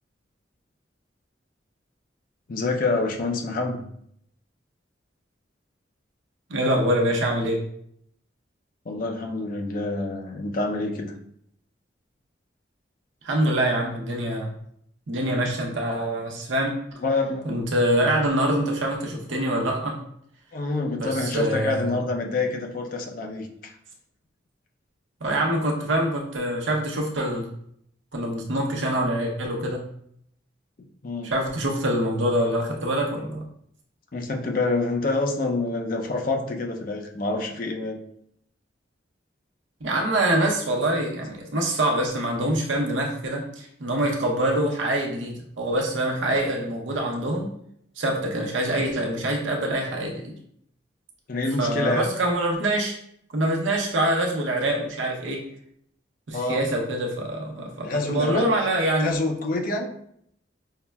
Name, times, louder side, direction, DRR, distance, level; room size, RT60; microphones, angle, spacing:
voice 1, 2.5-3.8 8.9-11.1 17.0-17.5 20.5-23.7 31.0-31.3 34.1-38.0 51.3-52.1 56.3-56.6 57.8-58.5 59.0-59.9, left 2 dB, 50° left, 2 dB, 0.5 m, -27 dB
voice 2, 6.5-7.6 13.2-14.5 15.1-16.8 17.4-20.0 21.0-22.0 25.2-27.5 28.1-29.8 31.2-33.4 39.8-47.5 48.0-50.3 51.6-53.0 53.3-55.4 56.3-59.1, right 1 dB, 90° right, 0 dB, 0.7 m, -25 dB
5.5 x 2.1 x 2.2 m, 0.69 s
head